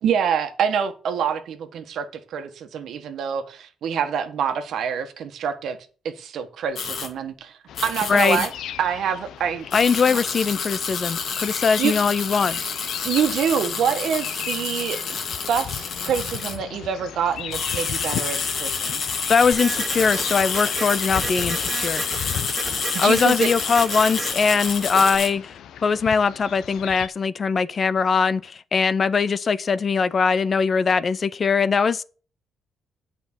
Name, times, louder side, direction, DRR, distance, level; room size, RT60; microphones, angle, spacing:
voice 1, 0.0-5.8 6.0-8.5 8.8-9.7 10.1-10.2 11.8-11.9 13.0-15.2 15.5-19.1 22.9-23.5, right 7 dB, 75° right, 1.4 m, -26 dB
sound 1, 6.7-7.1 7.7-8.5 9.7-16.6 17.3-25.3, left 5 dB, 60° left, 2.3 m, -29 dB
sound 2, 7.7-27.1, left 10 dB, 80° left, 0.7 m, -37 dB
voice 2, 8.1-8.5 9.7-12.6 19.3-22.0 23.0-25.5 25.8-32.0, left 5 dB, 40° left, 0.6 m, -21 dB
Printer, 19.5-25.2, right 3 dB, 25° right, 2.1 m, -33 dB
8.8 x 5.2 x 7.3 m
cardioid pair, 100°, 0 cm